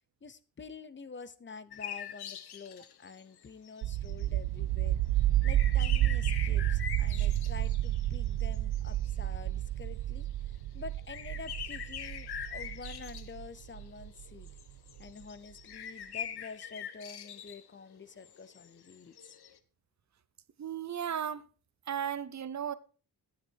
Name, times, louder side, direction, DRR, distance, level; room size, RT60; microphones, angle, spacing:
voice 1, 0.2-5.0 5.4-10.3 10.7-14.5 15.0-19.3, left 5 dB, 30° left, 0.7 m, -48 dB
sound 1, 1.7-4.3 5.2-9.5 9.8-10.3 10.6-19.6, left 8 dB, 85° left, 1.2 m, -44 dB
sound 2, 3.8-14.5, right 14 dB, 85° right, 0.5 m, -30 dB
voice 2, 20.6-21.4 21.9-22.7, right 9 dB, 45° right, 0.8 m, -35 dB
12.0 x 9.1 x 4.6 m
wide cardioid pair, 160°, 38 cm